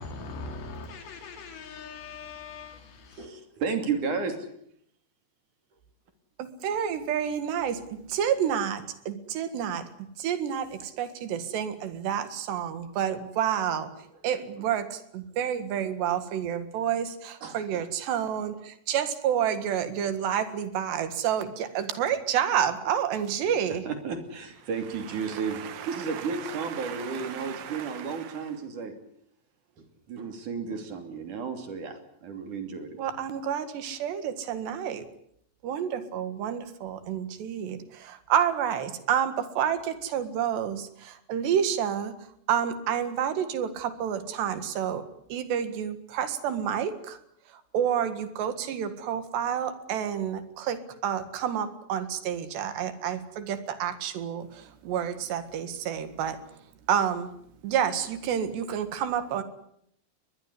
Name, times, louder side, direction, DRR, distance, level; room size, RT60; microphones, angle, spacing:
voice 1, 0.0-3.2, left 4 dB, 80° left, 5.4 m, -41 dB
voice 2, 3.1-4.5 14.3-14.7 17.4-17.9 23.4-23.5 23.9-28.9 29.8-33.0, right 5 dB, 50° right, 4.0 m, -33 dB
voice 3, 6.4-9.9 10.2-13.9 14.2-23.8 26.8-28.0 33.0-35.1 35.6-42.1 42.5-45.0 45.3-47.2 47.7-56.4 56.9-57.3 57.6-59.4, right 9 dB, 80° right, 4.0 m, -29 dB
22.0 x 21.0 x 9.8 m
omnidirectional pair, 4.9 m